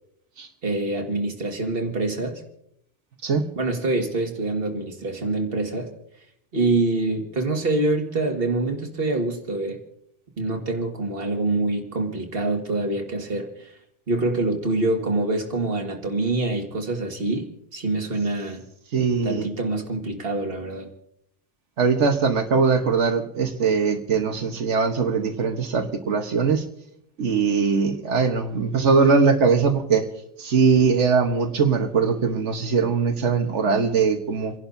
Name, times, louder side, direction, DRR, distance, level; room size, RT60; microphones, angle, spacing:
voice 1, 0.6-2.4 3.6-5.9 6.5-9.8 10.4-13.7 14.1-18.6 19.2-20.9, right 2 dB, 55° right, 2.0 m, -25 dB
voice 2, 18.9-19.5 21.8-26.6 27.2-30.0 30.4-34.5, right 5 dB, 90° right, 1.5 m, -21 dB
29.5 x 11.5 x 2.7 m
omnidirectional pair, 1.2 m